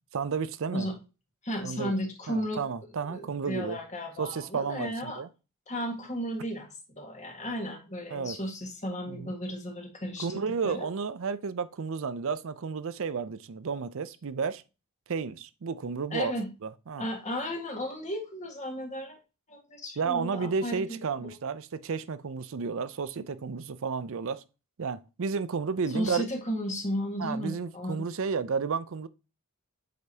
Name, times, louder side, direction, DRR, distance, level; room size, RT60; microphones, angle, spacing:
voice 1, 0.1-0.9 1.6-1.9 2.3-3.8 4.2-5.3 8.1-8.4 9.1-9.3 10.2-14.6 15.1-16.3 16.6-17.1 20.0-24.4 24.8-26.3 27.2-29.1, right 5 dB, 65° right, 0.5 m, -32 dB
voice 2, 1.4-2.6 3.1-5.2 5.7-6.7 7.0-10.9 16.1-16.5 17.0-19.2 19.5-21.3 25.9-28.1, equal, 35° left, 1.7 m, -34 dB
8.0 x 5.1 x 2.8 m
head